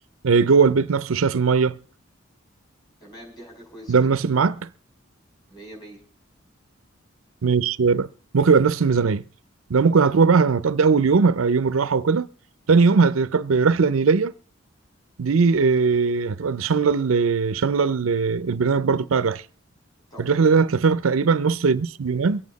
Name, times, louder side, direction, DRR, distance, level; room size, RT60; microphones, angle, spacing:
voice 1, 0.2-1.8 3.9-4.7 7.4-9.2 9.7-12.3 12.7-14.3 15.2-19.4 20.2-22.4, right 5 dB, 90° right, 0.6 m, -19 dB
voice 2, 3.0-4.1 5.5-6.0 20.1-20.7, right 1 dB, 20° left, 5.1 m, -43 dB
23.5 x 8.5 x 4.0 m
head